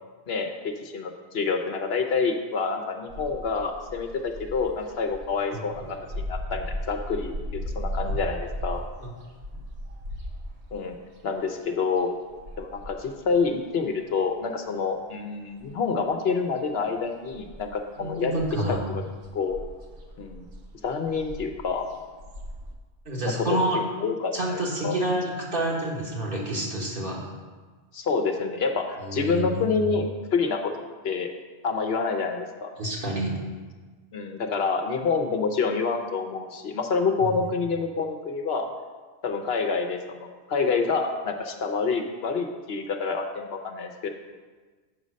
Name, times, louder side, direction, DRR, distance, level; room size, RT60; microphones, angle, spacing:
voice 1, 0.3-6.0 6.3-7.3 7.7-8.8 10.7-11.0 11.2-12.1 12.6-18.3 18.9-19.0 19.3-19.6 20.2-20.4 20.8-21.8 23.2-23.7 24.0-25.2 27.9-30.7 31.0-31.3 31.6-32.7 34.1-38.7 39.2-44.1, left 4 dB, 70° left, 4 dB, 1.0 m, -27 dB
sound 1, 3.1-14.7 15.0-16.3 16.6-22.7, equal, 75° right, 1.3 m, -37 dB
voice 2, 5.5-5.9 9.0-9.1 18.0-18.8 23.1-23.8 24.3-27.3 29.0-29.7 32.8-33.4 37.2-37.5, right 1 dB, 50° right, -3 dB, 1.7 m, -28 dB
7.5 x 5.4 x 6.3 m, 1.4 s
omnidirectional pair, 1.1 m